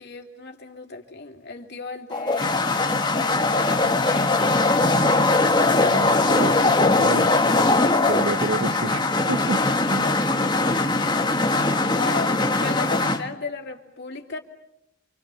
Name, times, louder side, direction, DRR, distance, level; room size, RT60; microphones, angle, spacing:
voice 1, 0.0-2.6 3.1-4.8 11.9-14.4, left 4 dB, 50° left, 2 dB, 3.1 m, -36 dB
sound 1, 2.1-13.2, left 2 dB, 20° left, 1.5 m, -21 dB
voice 2, 5.9-7.3 7.6-7.7 8.1-10.1, right 3 dB, 60° right, 10 dB, 1.0 m, -30 dB
27.5 x 27.0 x 7.1 m, 0.82 s
head